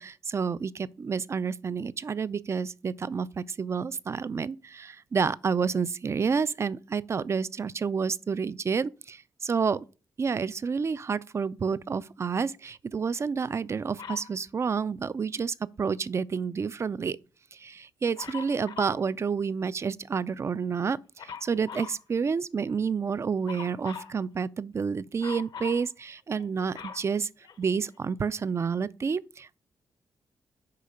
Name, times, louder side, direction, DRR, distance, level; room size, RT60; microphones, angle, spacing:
voice 1, 0.0-9.8 10.2-17.2 17.5-27.3 27.6-29.6, right 5 dB, 35° right, 0.4 m, -29 dB
Dog, 14.0-14.3 18.2-19.0 21.2-22.0 23.4-24.2 25.2-25.8 26.4-27.9 28.6-28.7, left 6 dB, 70° left, 1.1 m, -41 dB
6.7 x 4.8 x 6.4 m
cardioid pair, 95°, 8 cm